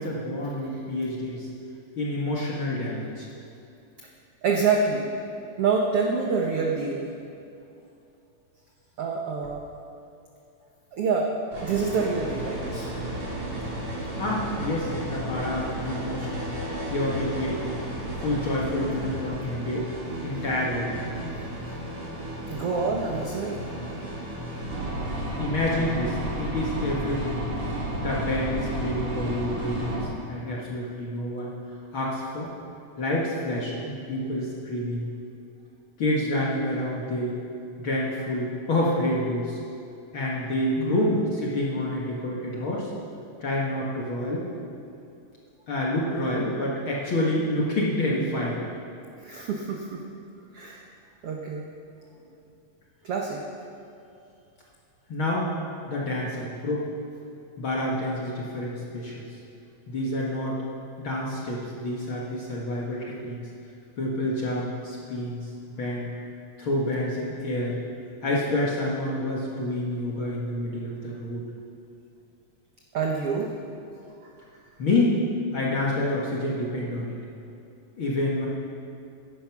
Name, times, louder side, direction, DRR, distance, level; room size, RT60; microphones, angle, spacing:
voice 1, 0.0-1.5 2.0-3.3 14.2-16.3 16.9-17.6 18.2-19.9 20.2-21.3 25.4-27.5 28.0-31.5 31.9-32.5 33.0-35.1 36.0-37.4 37.8-39.6 40.1-42.9 43.4-44.5 45.7-48.6 55.1-55.5 55.9-56.9 57.6-59.3 59.9-60.6 61.0-63.4 64.0-65.5 65.8-66.1 66.6-67.8 68.2-71.4 74.8-75.2 75.5-77.2 78.0-78.5, left 1 dB, 50° left, -4 dB, 1.7 m, -28 dB
voice 2, 4.4-5.1 5.6-7.1 9.0-9.6 10.9-11.3 11.6-12.9 22.5-23.6 40.8-41.2 49.2-50.0 50.5-50.8 51.2-51.7 53.0-53.4 72.9-73.5, right 5 dB, 75° right, -1 dB, 1.3 m, -26 dB
sound 1, 11.5-30.0, right 1 dB, 40° right, 3.9 m, -33 dB
16.0 x 10.5 x 6.0 m, 2.6 s
omnidirectional pair, 4.2 m